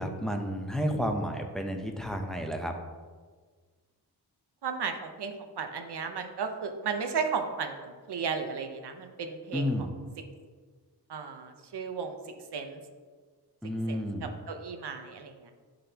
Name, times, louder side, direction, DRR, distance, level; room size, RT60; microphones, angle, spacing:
voice 1, 0.0-2.7 9.5-9.9 13.6-14.3, equal, ahead, 3 dB, 0.6 m, -31 dB
voice 2, 4.6-9.9 11.1-12.2 12.5-12.8 13.9-15.5, right 5 dB, 70° right, 6 dB, 0.8 m, -35 dB
11.0 x 4.1 x 2.8 m, 1.5 s
wide cardioid pair, 125°, 41 cm